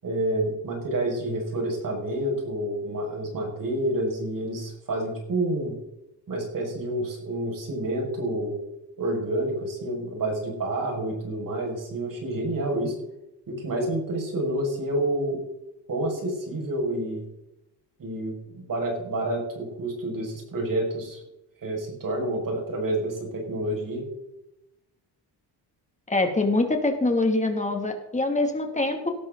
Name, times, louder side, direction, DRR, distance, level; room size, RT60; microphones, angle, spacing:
voice 1, 0.0-5.7 6.3-8.6 9.0-13.0 13.5-15.4 15.9-17.3 18.0-21.2 21.6-24.0, right 1 dB, 45° right, 1 dB, 6.2 m, -28 dB
voice 2, 26.1-29.1, left 2 dB, 15° left, 4 dB, 2.6 m, -24 dB
18.0 x 13.0 x 4.0 m, 0.88 s
cardioid pair, 120°, 44 cm